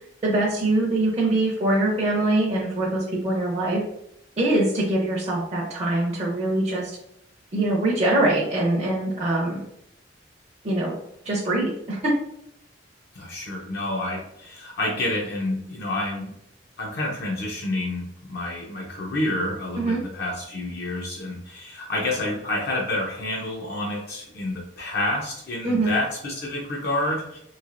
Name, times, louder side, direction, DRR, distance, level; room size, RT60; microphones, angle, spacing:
voice 1, 0.2-3.8 4.4-6.9 7.5-9.6 10.6-10.9 11.2-12.1 19.8-20.0 25.6-25.9, right 2 dB, 35° right, -4 dB, 0.5 m, -23 dB
voice 2, 13.1-16.3 16.8-27.4, left 1 dB, 60° left, -3 dB, 0.6 m, -29 dB
3.1 x 2.8 x 2.4 m, 0.77 s
head